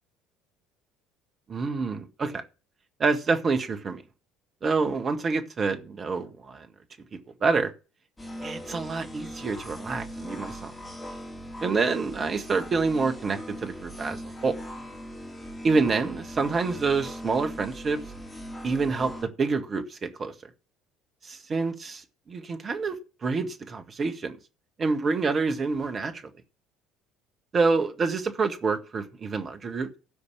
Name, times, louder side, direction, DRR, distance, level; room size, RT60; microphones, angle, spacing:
voice 1, 1.5-2.4 3.0-4.0 4.6-6.7 7.4-7.7 8.4-10.7 11.6-14.6 15.6-18.0 18.6-20.3 21.2-24.4 24.8-26.2 27.5-30.0, right 4 dB, 35° right, 7 dB, 1.8 m, -27 dB
sound 1, 8.2-19.2, equal, 15° left, 3.9 m, -40 dB
13.5 x 5.2 x 7.3 m, 0.32 s
figure-of-eight pair, 55°, 0 cm